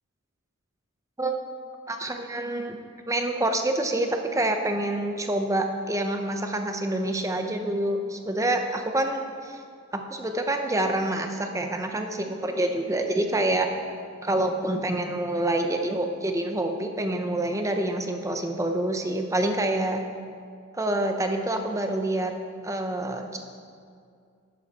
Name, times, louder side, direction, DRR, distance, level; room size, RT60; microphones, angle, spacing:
voice 1, 1.9-2.8 3.1-9.6 9.9-13.7 14.2-20.0 20.7-22.3 22.6-23.4, right 1 dB, 15° right, 5 dB, 0.7 m, -27 dB
11.5 x 9.6 x 4.2 m, 2.3 s
head